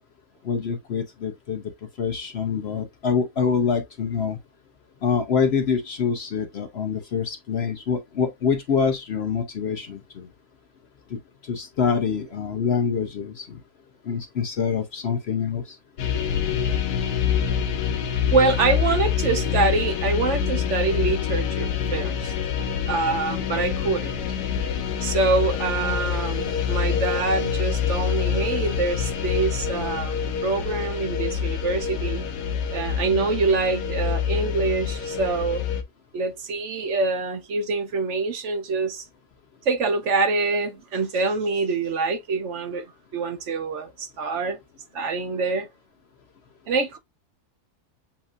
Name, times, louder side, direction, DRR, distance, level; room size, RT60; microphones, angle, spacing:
voice 1, 0.4-1.6 2.0-4.4 5.0-10.2 11.1-11.2 11.5-13.5 14.1-15.8, left 6 dB, 60° left, 0.7 m, -25 dB
sound 1, 16.0-35.8, left 8 dB, 90° left, 1.3 m, -26 dB
voice 2, 18.3-22.3 22.9-24.2 25.0-30.2 30.4-32.2 32.7-35.6 36.1-39.1 39.7-42.8 43.1-44.6 44.9-45.7 46.7-47.0, right 3 dB, 60° right, 0.9 m, -25 dB
7.2 x 2.6 x 2.4 m
omnidirectional pair, 1.7 m